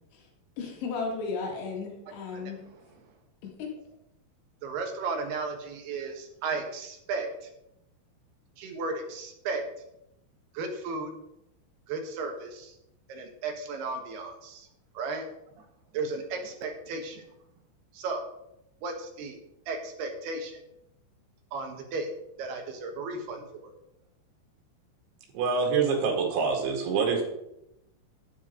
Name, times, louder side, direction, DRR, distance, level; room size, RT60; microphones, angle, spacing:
voice 1, 0.6-2.6 3.4-3.7, left 4 dB, 85° left, -1 dB, 4.6 m, -34 dB
voice 2, 4.6-7.5 8.6-9.6 10.5-11.1 11.9-12.8 13.1-14.7 14.9-15.2 15.6-15.7 15.9-17.2 17.9-18.2 18.8-19.4 19.7-20.6 21.5-22.1 22.4-23.7, right 3 dB, 70° right, 3 dB, 3.2 m, -34 dB
voice 3, 25.3-27.2, right 5 dB, 90° right, 0 dB, 4.5 m, -25 dB
12.0 x 9.6 x 3.8 m, 0.84 s
omnidirectional pair, 5.2 m